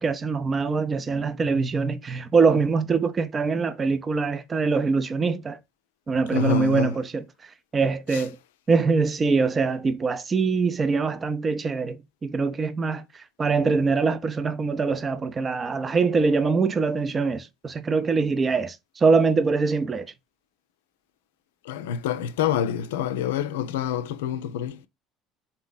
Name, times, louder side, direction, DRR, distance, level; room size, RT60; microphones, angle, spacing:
voice 1, 0.0-5.6 6.1-7.2 7.7-8.4 8.7-13.0 13.4-20.1, right 4 dB, 30° right, 0.6 m, -23 dB
voice 2, 6.3-6.9 21.7-24.8, left 8 dB, 75° left, 0.4 m, -26 dB
3.9 x 2.9 x 4.0 m
hypercardioid pair, 60°, 0 cm